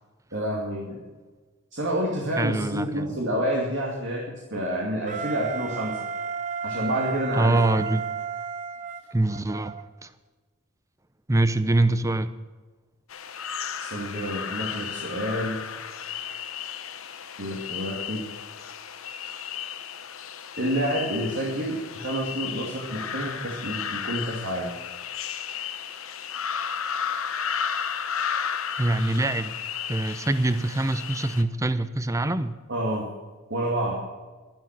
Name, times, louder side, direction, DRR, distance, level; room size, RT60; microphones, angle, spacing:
voice 1, 0.3-1.0 1.7-6.0 6.6-7.6 13.8-15.6 17.4-18.2 20.6-24.7 32.7-33.1 33.5-34.0, equal, 60° right, -2 dB, 2.5 m, -28 dB
voice 2, 2.4-3.1 7.4-8.1 9.1-9.8 10.0-10.1 11.3-12.3 28.8-29.5 29.9-32.5, right 2 dB, 15° right, 13 dB, 0.7 m, -24 dB
Wind instrument woodwind instrument, 5.1-9.8, right 6 dB, 35° right, 0.9 m, -33 dB
sound 1, 13.1-31.4, left 7 dB, 70° left, 1.0 m, -34 dB
12.0 x 12.0 x 6.1 m, 1.3 s
head